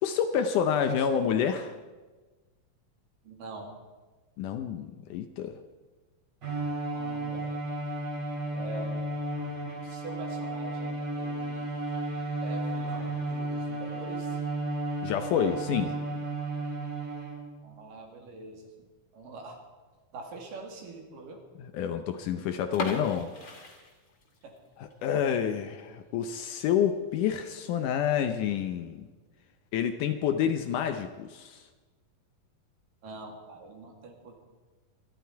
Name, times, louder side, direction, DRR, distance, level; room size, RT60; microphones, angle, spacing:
voice 1, 0.0-1.8 4.4-5.6 15.0-15.9 21.6-23.3 24.8-29.1 29.7-31.6, left 8 dB, 75° left, 8 dB, 2.0 m, -28 dB
voice 2, 3.2-3.7 6.9-7.5 8.5-9.1 9.8-11.7 12.4-14.4 15.8-16.0 17.6-18.7 19.1-19.6 20.1-21.4 22.5-22.6 24.4-24.6 33.0-34.3, right 3 dB, 70° right, 2 dB, 3.8 m, -44 dB
Bowed string instrument, 6.4-17.6, right 2 dB, 30° right, 3.2 m, -33 dB
sound 1, 22.7-24.6 24.9-25.0 25.5-25.7 26.1-26.2 26.5-26.6 27.3-27.7, left 2 dB, 35° left, 2.5 m, -37 dB
26.0 x 11.5 x 4.6 m, 1.3 s
omnidirectional pair, 4.1 m